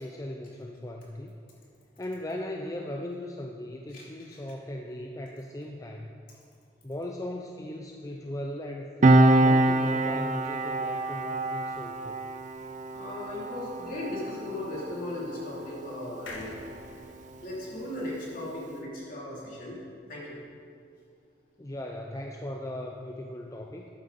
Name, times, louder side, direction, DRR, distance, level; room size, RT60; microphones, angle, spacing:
voice 1, 0.0-1.4 2.0-6.1 6.8-12.2 21.6-23.9, left 1 dB, 20° left, 2 dB, 0.5 m, -38 dB
Piano, 9.0-16.0 16.3-16.5, right 2 dB, 40° right, 0.5 m, -25 dB
voice 2, 12.9-16.5 17.4-19.8 20.1-20.3, left 1 dB, 50° left, -5 dB, 3.2 m, -37 dB
sound 1, 16.3-19.7 20.1-20.2 20.4-20.5, left 1 dB, 85° left, 1.5 m, -48 dB
12.5 x 9.3 x 4.2 m, 2.3 s
head